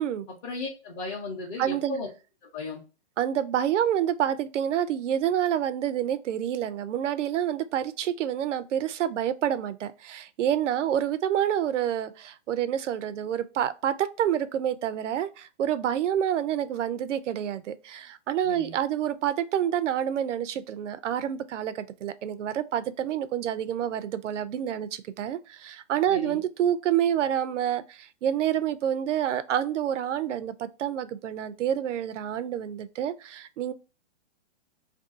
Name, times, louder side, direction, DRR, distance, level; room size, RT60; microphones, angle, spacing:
voice 1, 0.4-2.1 2.5-2.8 18.4-18.7 26.1-26.4, left 3 dB, 30° left, 0.6 m, -35 dB
voice 2, 1.6-2.0 3.2-33.7, right 10 dB, 90° right, 0.5 m, -28 dB
2.6 x 2.3 x 2.4 m
hypercardioid pair, 155°, 35 cm